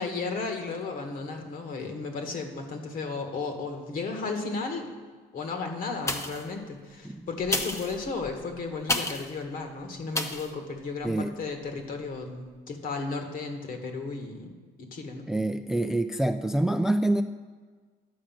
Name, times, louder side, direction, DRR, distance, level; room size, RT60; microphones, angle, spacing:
voice 1, 0.0-4.9 5.3-14.5 14.8-15.2, left 4 dB, 55° left, 4 dB, 1.7 m, -34 dB
sound 1, 6.0-6.6 7.4-9.3 10.1-10.5 11.0-11.1, left 2 dB, 15° left, 0.8 m, -31 dB
voice 2, 15.3-17.2, right 1 dB, 5° right, 9 dB, 0.3 m, -26 dB
11.0 x 4.9 x 7.5 m, 1.4 s
cardioid pair, 110°, 17 cm